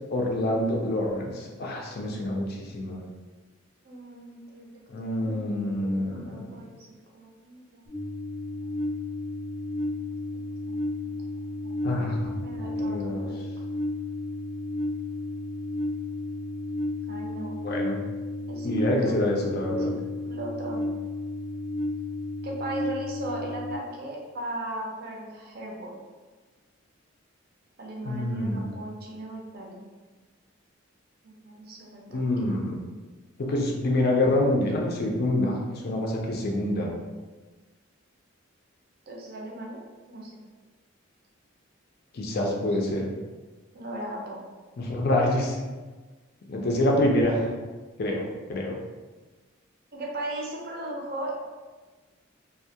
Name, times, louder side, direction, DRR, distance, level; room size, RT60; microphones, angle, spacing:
voice 1, 0.1-2.5 2.7-3.0 4.9-6.5 11.8-12.5 12.8-13.3 17.6-18.0 18.6-19.9 28.0-28.7 32.1-32.8 33.4-36.9 42.1-43.1 44.8-45.6 46.5-47.4 48.0-48.7, left 1 dB, 50° left, -1 dB, 0.4 m, -26 dB
voice 2, 3.8-7.8 10.0-10.1 10.6-11.1 11.6-11.7 12.2-13.4 17.1-17.6 18.5-19.3 20.3-20.9 22.4-25.9 27.8-29.8 31.2-32.2 39.1-39.8 40.1-40.4 42.5-42.7 43.7-44.4 49.9-51.4, right 1 dB, 50° right, -1 dB, 0.5 m, -38 dB
sound 1, 7.9-23.7, left 2 dB, 5° right, 0.7 m, -32 dB
2.2 x 2.0 x 2.7 m, 1.3 s
head